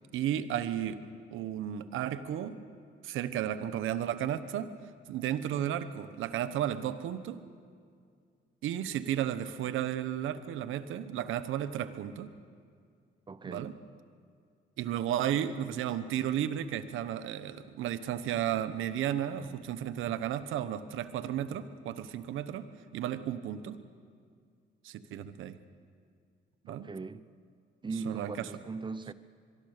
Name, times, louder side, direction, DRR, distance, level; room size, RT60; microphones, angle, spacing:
voice 1, 0.1-1.0 1.3-2.6 3.0-4.7 5.1-7.4 8.6-12.3 13.5-13.7 14.8-22.7 22.9-23.8 24.8-25.6 26.6-26.9 28.0-28.4, right 10 dB, 85° right, 1.1 m, -33 dB
voice 2, 13.3-13.8 26.7-27.3 27.8-29.1, right 4 dB, 25° right, 0.8 m, -39 dB
24.0 x 23.0 x 6.7 m
cardioid pair, 90°, 20 cm